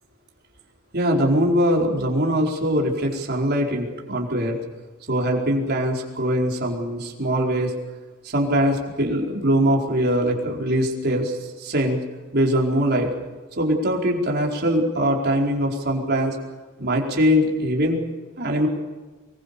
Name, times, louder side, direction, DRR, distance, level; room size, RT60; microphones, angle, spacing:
voice 1, 0.9-4.6 5.1-7.7 8.2-12.0 12.3-13.1 13.6-16.4 16.8-18.0 18.4-18.7, equal, 50° right, 0 dB, 4.6 m, -22 dB
25.0 x 23.0 x 7.0 m, 1.3 s
head